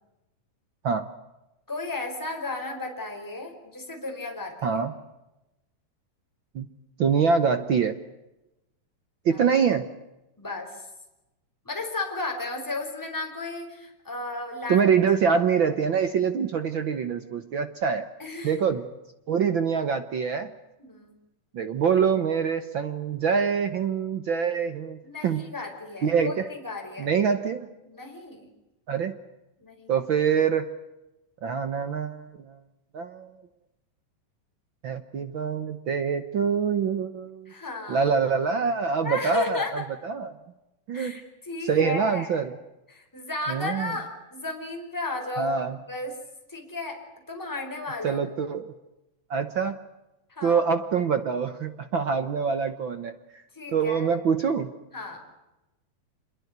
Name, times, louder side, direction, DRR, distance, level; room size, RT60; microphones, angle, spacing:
voice 1, 1.7-4.8 9.3-9.4 10.4-10.8 11.6-14.9 15.3-15.4 18.2-18.5 20.8-21.1 25.0-27.1 27.9-28.5 29.6-29.9 37.5-38.1 39.0-39.7 40.9-42.4 42.9-46.2 46.5-48.2 50.3-50.6 53.5-54.1 54.9-55.2, left 2 dB, 5° left, 2 dB, 4.9 m, -34 dB
voice 2, 4.6-4.9 6.5-6.7 7.0-7.9 9.2-9.9 14.7-18.1 18.4-18.8 19.3-20.5 21.5-25.4 26.0-26.5 27.0-27.7 28.9-29.2 29.9-30.7 31.4-32.6 32.9-33.4 34.8-37.5 37.9-40.3 40.9-41.2 41.7-42.5 43.5-43.9 45.4-45.8 48.0-48.7 49.3-49.9 50.4-53.1 53.7-54.7, right 6 dB, 70° right, 10 dB, 1.1 m, -25 dB
27.0 x 22.5 x 8.1 m, 0.96 s
omnidirectional pair, 3.8 m